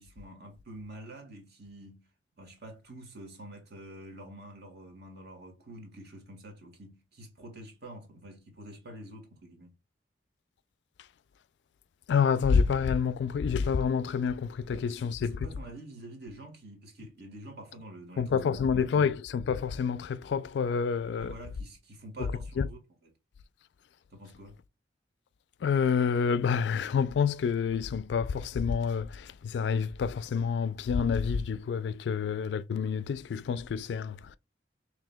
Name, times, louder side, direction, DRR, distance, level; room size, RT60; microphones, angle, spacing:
voice 1, 0.0-2.1 2.4-9.7 14.7-19.1 21.1-22.8 24.1-24.6, right 1 dB, 60° right, 1.6 m, -47 dB
voice 2, 12.1-15.5 18.2-21.4 22.6-22.7 25.6-34.4, left 6 dB, 70° left, 0.3 m, -28 dB
4.8 x 3.3 x 2.2 m
head